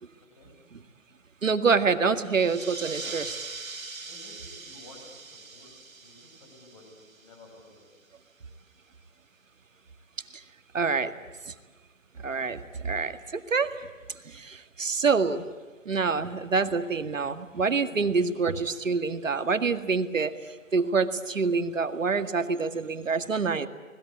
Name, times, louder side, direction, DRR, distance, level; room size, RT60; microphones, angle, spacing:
voice 1, 1.4-3.3 10.7-11.1 11.5-11.6 12.2-13.8 14.3-15.4 15.9-20.3 20.7-23.7, right 4 dB, 70° right, 9 dB, 2.1 m, -26 dB
sound 1, 2.3-7.5, right 4 dB, 90° right, 2.5 m, -41 dB
voice 2, 4.0-5.7 6.0-8.0, left 2 dB, 25° left, 3 dB, 7.0 m, -53 dB
29.5 x 20.5 x 8.5 m, 1.4 s
hypercardioid pair, 165°, 40 cm